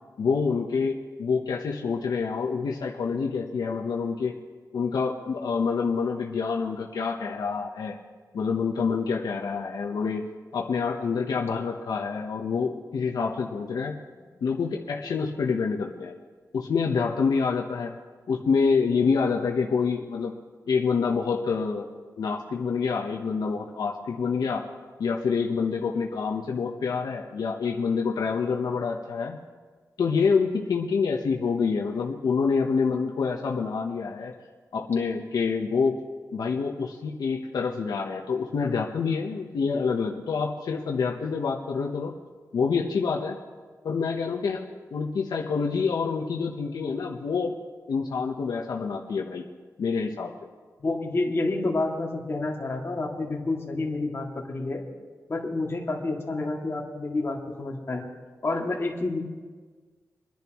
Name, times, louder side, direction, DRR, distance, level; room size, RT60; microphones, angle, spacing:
voice 1, 0.2-4.4 4.7-7.9 8.3-10.2 10.5-14.0 14.4-16.1 16.5-17.9 18.3-20.3 20.7-21.8 22.2-24.7 25.0-29.4 30.0-34.3 34.7-36.0 36.3-42.1 42.5-43.4 43.8-44.6 44.9-47.5 47.9-49.4 49.8-50.3, left 5 dB, 85° left, 0 dB, 1.0 m, -27 dB
voice 2, 50.8-54.8 55.3-58.1 58.4-59.2, left 2 dB, 40° left, -2 dB, 2.3 m, -29 dB
28.5 x 10.5 x 3.1 m, 1.5 s
wide cardioid pair, 105°, 7 cm